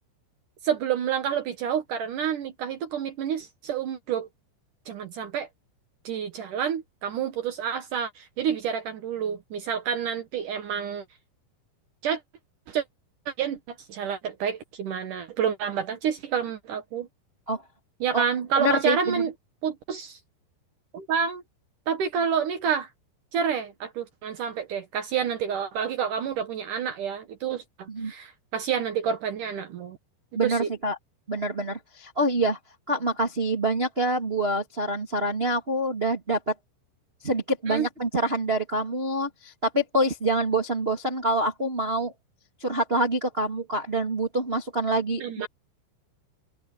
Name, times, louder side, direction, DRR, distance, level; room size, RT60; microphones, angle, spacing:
voice 1, 0.6-4.3 4.9-5.5 6.0-11.1 12.0-12.2 12.7-12.8 13.3-17.1 18.0-19.3 19.6-20.2 20.9-21.4 21.9-22.9 23.3-30.0 30.4-30.7 37.7-37.9 45.2-45.5, right 7 dB, 70° right, 2.0 m, -29 dB
voice 2, 18.5-19.2 27.9-28.1 30.3-30.9 31.3-32.6 32.9-36.5 37.2-42.1 42.6-45.5, right 1 dB, 25° right, 1.2 m, -26 dB
open air
omnidirectional pair, 5.6 m